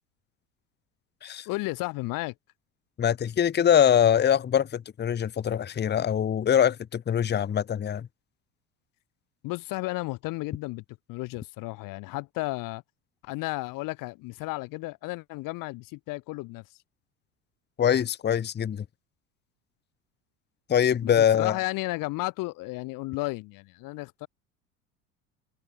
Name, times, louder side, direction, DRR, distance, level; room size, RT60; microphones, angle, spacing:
voice 1, 1.5-2.3 9.4-12.8 13.2-16.8 21.0-24.3, left 22 dB, 50° left, 1.2 m, -33 dB
voice 2, 3.0-8.1 17.8-18.8 20.7-21.6, left 9 dB, 25° left, 1.1 m, -23 dB
open air
figure-of-eight pair, 70°, 43 cm